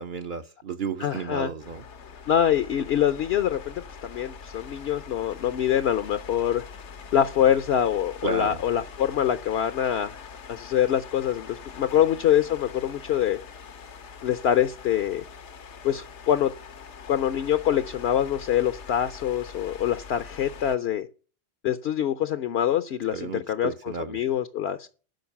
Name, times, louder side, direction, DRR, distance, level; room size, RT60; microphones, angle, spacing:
voice 1, 0.0-1.8 8.2-8.6 23.1-24.2, right 5 dB, 55° right, 0.8 m, -33 dB
voice 2, 1.0-1.5 2.3-3.7 4.0-6.6 7.1-10.2 10.5-13.4 14.2-15.2 15.8-16.5 17.1-21.1 21.6-23.7 24.1-24.9, left 10 dB, 70° left, 0.9 m, -24 dB
sound 1, 1.6-20.8, left 5 dB, 85° left, 1.2 m, -43 dB
12.0 x 5.3 x 7.0 m
omnidirectional pair, 1.2 m